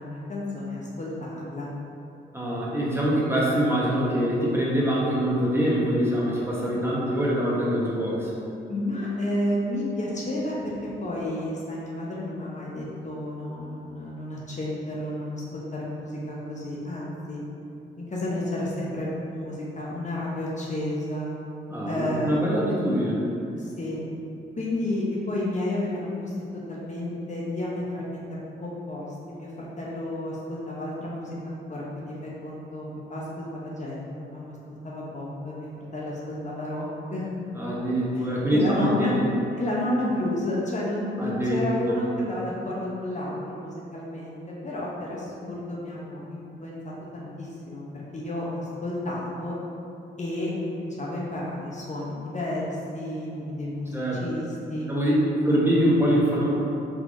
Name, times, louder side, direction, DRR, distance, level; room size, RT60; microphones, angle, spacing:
voice 1, 0.0-1.7 8.7-17.4 18.0-21.3 21.8-22.5 23.6-24.0 24.6-26.3 26.7-28.3 28.6-34.5 34.8-37.3 38.2-39.2 39.6-49.6 50.2-53.9 54.2-54.9, left 1 dB, 35° left, -5 dB, 0.7 m, -31 dB
voice 2, 2.3-8.3 21.7-23.2 37.5-39.2 41.2-41.9 53.9-54.2 54.9-55.1 55.4-56.5, equal, 10° right, -6 dB, 1.0 m, -24 dB
3.5 x 2.9 x 2.5 m, 2.7 s
supercardioid pair, 50°, 21 cm